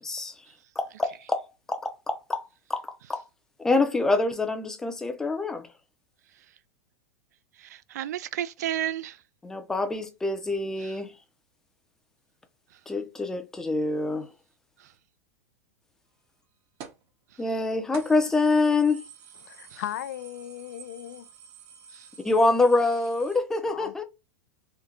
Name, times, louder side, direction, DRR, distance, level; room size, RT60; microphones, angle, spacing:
voice 1, 0.0-0.4 0.8-3.2 3.6-5.7 9.4-11.2 12.9-14.3 17.4-19.1 22.2-24.0, left 3 dB, 5° left, 0.4 m, -26 dB
voice 2, 7.6-9.2 19.7-19.8 21.9-22.1, right 11 dB, 85° right, 0.4 m, -32 dB
sound 1, 16.8-17.1 17.5-17.6 17.9-23.4, right 7 dB, 35° right, 0.6 m, -48 dB
voice 3, 19.4-21.3 23.7-23.9, left 12 dB, 85° left, 0.4 m, -37 dB
3.8 x 2.1 x 2.8 m
supercardioid pair, 165°, 9 cm